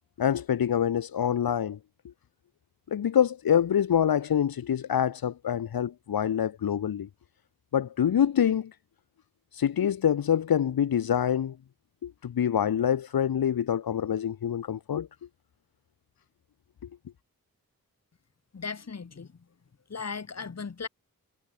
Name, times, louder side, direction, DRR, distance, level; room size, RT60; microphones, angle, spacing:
voice 1, 0.2-1.8 2.9-7.1 7.7-8.7 9.5-11.6 12.0-15.1, left 9 dB, 80° left, 0.8 m, -26 dB
voice 2, 18.5-19.3 19.9-20.9, left 5 dB, 45° left, 1.4 m, -37 dB
wide cardioid pair, 75°, 36 cm